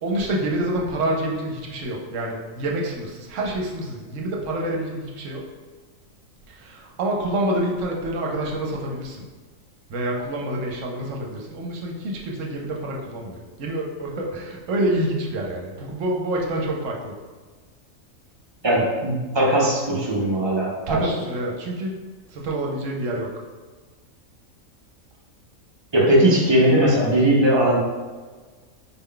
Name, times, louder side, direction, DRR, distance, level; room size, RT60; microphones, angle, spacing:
voice 1, 0.0-5.5 6.5-9.2 9.9-17.1 20.9-21.9 22.3-23.3, right 1 dB, 70° right, -1 dB, 1.0 m, -27 dB
voice 2, 18.6-21.2 25.9-27.8, right 1 dB, 45° right, -4 dB, 0.3 m, -19 dB
4.1 x 2.2 x 3.7 m, 1.4 s
omnidirectional pair, 1.4 m